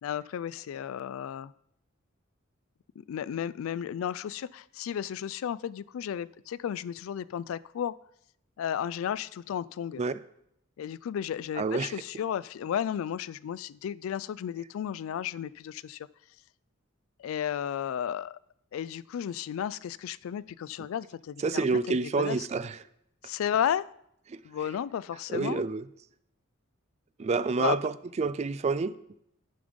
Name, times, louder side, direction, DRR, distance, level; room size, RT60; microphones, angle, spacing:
voice 1, 0.0-1.5 3.0-7.9 8.6-10.0 10.8-16.1 17.2-18.4 18.7-22.5 23.2-23.9 24.4-25.6 27.6-27.8, left 9 dB, 80° left, 20 dB, 0.3 m, -33 dB
voice 2, 11.6-11.9 21.4-22.8 24.3-24.4 25.3-25.9 27.2-28.9, right 4 dB, 30° right, 15 dB, 0.3 m, -28 dB
10.5 x 5.2 x 5.1 m, 0.76 s
head